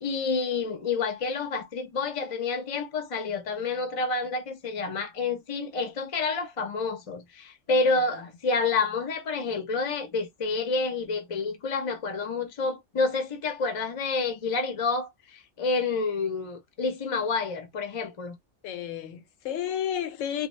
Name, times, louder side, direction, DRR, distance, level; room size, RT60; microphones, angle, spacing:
voice 1, 0.0-18.4, left 3 dB, 35° left, 0.5 m, -29 dB
voice 2, 18.6-20.5, left 10 dB, 90° left, 1.0 m, -32 dB
2.2 x 2.1 x 2.9 m
omnidirectional pair, 1.3 m